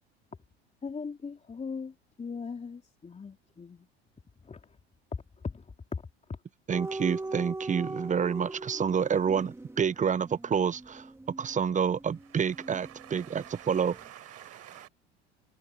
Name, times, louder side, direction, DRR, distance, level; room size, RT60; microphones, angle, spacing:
voice 1, 0.8-3.9 4.4-4.6 5.4-6.0, left 5 dB, 20° left, 3.6 m, -39 dB
sound 1, 6.7-13.5 13.7-14.0, right 2 dB, 10° right, 2.0 m, -40 dB
voice 2, 6.7-11.1 11.4-14.0, right 7 dB, 25° right, 1.0 m, -28 dB
voice 3, 12.2-14.9, right 14 dB, 50° right, 7.9 m, -50 dB
figure-of-eight pair, 75°, 32 cm